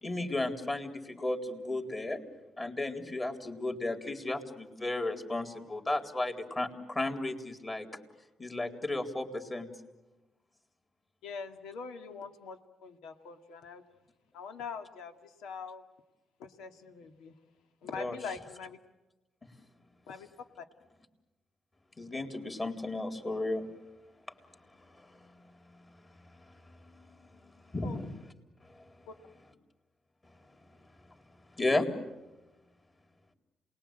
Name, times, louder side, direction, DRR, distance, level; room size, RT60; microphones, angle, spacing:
voice 1, 0.0-2.2 2.6-7.9 8.4-9.7 18.0-18.1 22.0-23.7 27.7-28.1 28.7-28.8 31.6-31.9, left 2 dB, 25° left, 4 dB, 3.9 m, -34 dB
voice 2, 11.2-13.8 14.3-15.8 16.4-17.4 17.8-18.8 20.1-20.3 20.6-20.7 27.8-28.0 29.1-29.2, left 5 dB, 90° left, 6 dB, 2.1 m, -43 dB
28.0 x 20.5 x 9.0 m, 1.1 s
cardioid pair, 90°, 0 cm